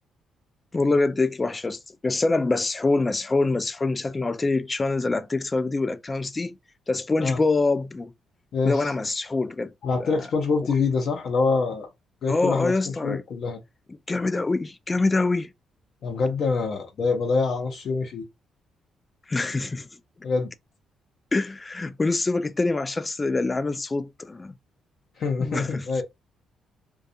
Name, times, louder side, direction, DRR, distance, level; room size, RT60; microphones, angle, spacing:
voice 1, 0.7-6.6 6.9-8.1 8.6-9.7 10.0-10.2 12.3-13.2 14.1-15.5 19.3-19.9 21.3-24.5 25.4-25.8, left 3 dB, 25° left, 0.3 m, -25 dB
voice 2, 8.5-8.9 9.8-11.9 12.2-13.6 16.0-18.3 20.2-20.5 25.2-26.0, left 4 dB, 65° left, 0.6 m, -25 dB
2.4 x 2.2 x 2.6 m
cardioid pair, 90°, 0 cm